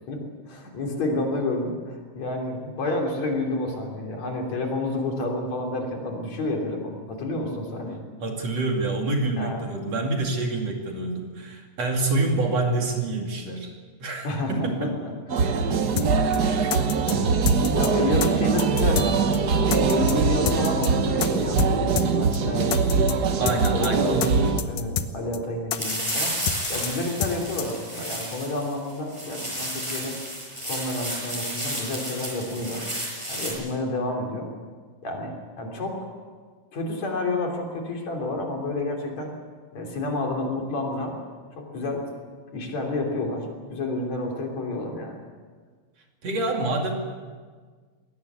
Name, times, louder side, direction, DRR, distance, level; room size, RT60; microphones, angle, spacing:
voice 1, 0.1-8.0 9.4-9.6 14.2-15.8 16.3-17.3 17.7-23.0 23.7-26.3 26.7-30.2 30.6-32.8 33.3-34.5 35.0-36.0 36.7-39.3 39.7-41.2 41.6-42.1 42.5-45.2, left 2 dB, 60° left, 2 dB, 4.5 m, -30 dB
voice 2, 8.2-13.7 14.0-14.9 16.3-16.7 23.4-24.5 46.2-46.9, right 2 dB, 55° right, 2 dB, 3.5 m, -27 dB
sound 1, 15.3-24.6, right 4 dB, 80° right, 0.9 m, -22 dB
sound 2, 16.0-16.1 16.3-16.4 16.7-17.1 17.5-17.9 18.2-18.3 18.6-19.1 19.3-19.4 19.7-20.1 20.5-20.9 21.2-21.3 21.6-21.7 22.0-22.1 22.3-22.4 22.7-23.1 23.5-23.9 24.2-24.3 24.6-25.1 25.3-25.4 25.7-26.1 26.5-26.9 27.2-27.3 27.6-27.7, left 10 dB, 80° left, 2.7 m, -28 dB
sound 3, 25.8-33.5, equal, 10° right, 7.3 m, -32 dB
22.5 x 18.0 x 8.2 m, 1.5 s
omnidirectional pair, 3.7 m